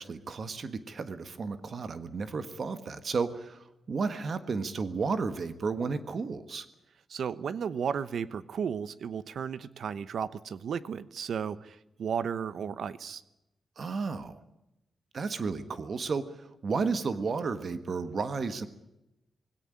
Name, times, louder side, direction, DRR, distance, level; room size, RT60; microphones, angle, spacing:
voice 1, 0.0-6.6 13.8-14.4 15.1-16.4 16.6-18.7, right 4 dB, 50° right, 11 dB, 1.5 m, -33 dB
voice 2, 7.1-13.2, right 7 dB, 70° right, 15 dB, 1.0 m, -34 dB
19.5 x 17.0 x 10.0 m, 0.92 s
wide cardioid pair, 125°, 0 cm